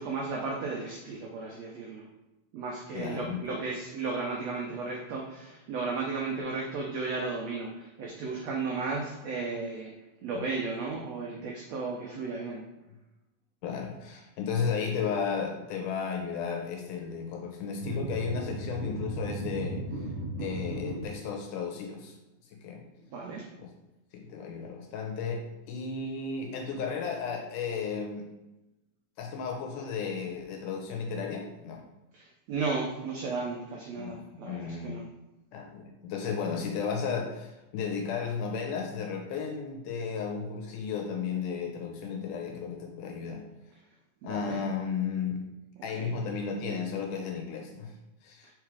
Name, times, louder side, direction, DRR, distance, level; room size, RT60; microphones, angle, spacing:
voice 1, 0.0-2.0 2.5-9.9 10.2-12.6 23.1-23.4 32.1-35.0 44.2-44.6 45.9-46.1, right 4 dB, 80° right, -1 dB, 1.5 m, -34 dB
voice 2, 2.9-3.4 10.3-10.4 13.6-20.1 20.4-22.1 22.5-22.8 23.6-23.7 24.1-28.3 29.2-31.8 34.0-34.2 34.4-35.0 35.5-43.4 44.2-45.4 45.8-47.9 48.2-48.5, left 6 dB, 75° left, 2 dB, 2.1 m, -34 dB
sound 1, 17.8-21.0, right 2 dB, 60° right, 1.3 m, -36 dB
4.8 x 4.2 x 4.7 m, 0.97 s
omnidirectional pair, 3.9 m